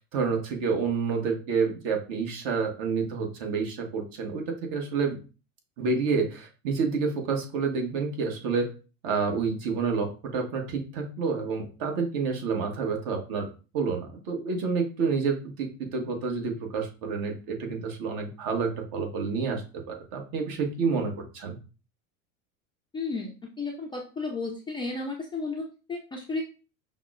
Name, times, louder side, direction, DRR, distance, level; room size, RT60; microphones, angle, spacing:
voice 1, 0.1-5.2 5.8-8.7 9.0-13.5 13.7-21.6, right 5 dB, 60° right, 3 dB, 1.1 m, -29 dB
voice 2, 22.9-26.4, left 3 dB, 15° left, -1 dB, 0.3 m, -33 dB
5.7 x 2.1 x 2.3 m, 0.34 s
supercardioid pair, 110°, 40 cm